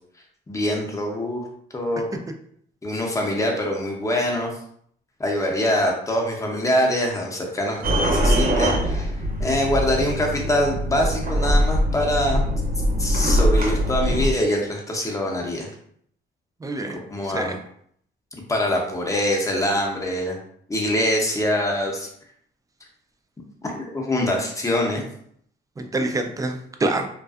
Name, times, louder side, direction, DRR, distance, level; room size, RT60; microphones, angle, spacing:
voice 1, 0.5-1.4 1.7-2.1 2.8-4.5 5.2-9.1 9.4-12.4 13.0-15.7 16.9-17.5 18.5-20.4 20.7-22.1 23.6-25.0, left 1 dB, 15° left, 0 dB, 0.6 m, -24 dB
sound 1, 7.8-14.3, equal, 50° right, 0.7 m, -22 dB
voice 2, 16.6-17.6 25.8-27.1, right 2 dB, 15° right, 5 dB, 0.3 m, -26 dB
2.5 x 2.3 x 2.3 m, 0.66 s
cardioid pair, 90°, 20 cm